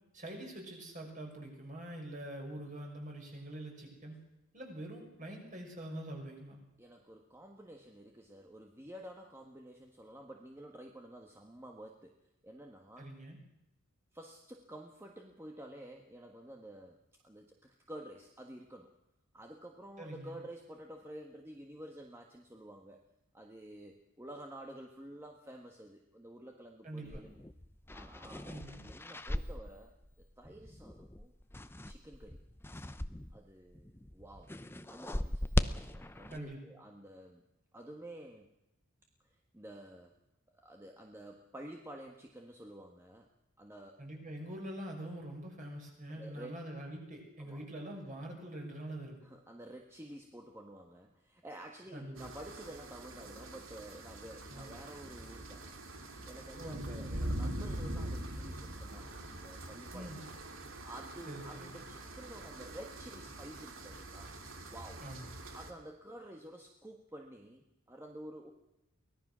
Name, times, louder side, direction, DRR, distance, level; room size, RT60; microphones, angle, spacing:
voice 1, 0.1-4.2 4.5-6.6 13.0-13.4 20.0-20.4 26.8-27.2 28.4-28.8 36.3-36.6 44.0-49.2 51.9-52.3 54.5-54.8 56.6-57.4 59.9-60.3 61.3-61.8 65.0-65.3, right 1 dB, 40° right, 1 dB, 6.1 m, -45 dB
voice 2, 6.8-12.1 12.4-13.1 14.1-17.0 17.2-18.9 19.3-23.0 23.3-27.4 27.9-28.5 28.8-29.9 30.4-31.3 31.8-32.4 32.7-32.8 33.3-34.5 34.9-35.5 35.9-37.5 37.7-38.5 39.2-40.1 40.6-43.3 43.6-43.9 46.1-46.5 47.4-47.6 49.2-55.8 56.3-60.3 60.8-65.0 65.5-68.5, right 1 dB, 10° right, 1 dB, 1.5 m, -50 dB
sound 1, 27.1-33.4 33.7-36.4, left 1 dB, 10° left, 0.7 m, -39 dB
sound 2, 52.2-65.7, right 1 dB, 65° right, 2.7 m, -43 dB
24.0 x 18.0 x 6.3 m, 0.88 s
head